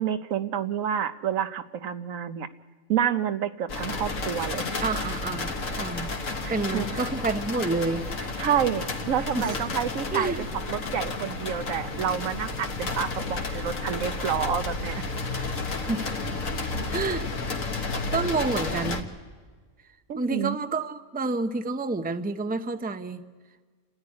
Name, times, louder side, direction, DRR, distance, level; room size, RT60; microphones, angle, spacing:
voice 1, 0.0-2.5 2.9-4.8 6.4-6.9 8.4-10.3 10.7-15.0 20.1-20.6, right 8 dB, 90° right, 10 dB, 1.3 m, -28 dB
sound 1, 3.7-19.0, left 3 dB, 85° left, 2.0 m, -32 dB
voice 2, 4.8-6.1 6.5-8.0 9.3-9.6 10.1-10.4 15.4-16.1 16.9-17.3 18.1-19.1 20.2-23.2, right 3 dB, 10° right, 9 dB, 0.5 m, -29 dB
29.5 x 13.5 x 9.7 m, 1.5 s
omnidirectional pair, 1.3 m